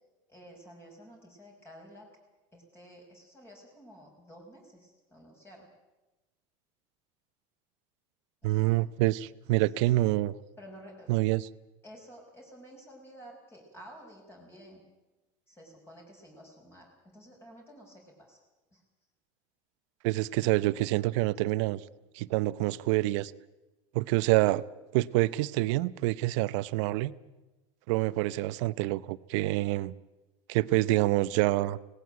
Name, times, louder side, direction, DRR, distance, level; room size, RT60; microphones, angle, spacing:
voice 1, 0.3-2.1 2.5-5.7 8.4-8.8 9.6-9.9 10.6-11.1 11.8-14.8 15.5-18.4 18.7-18.8, equal, 15° left, 0 dB, 5.3 m, -52 dB
voice 2, 8.4-10.3 11.1-11.5 20.0-21.8 22.1-23.3 23.9-24.6 24.9-27.1 27.9-29.9 30.5-31.8, right 18 dB, 75° right, 17 dB, 0.8 m, -27 dB
18.5 x 18.0 x 9.1 m, 1.1 s
supercardioid pair, 115°, 16 cm